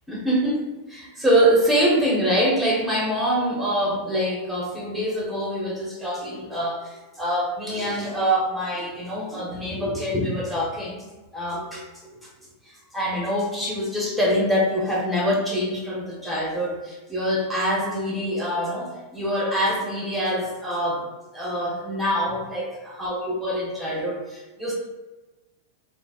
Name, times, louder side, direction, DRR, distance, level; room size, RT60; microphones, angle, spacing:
voice 1, 0.1-11.0 11.3-11.8 12.1-12.2 12.9-21.0 21.3-24.7, equal, ahead, -4 dB, 0.9 m, -25 dB
3.8 x 2.1 x 2.4 m, 1.2 s
hypercardioid pair, 120°, 0 cm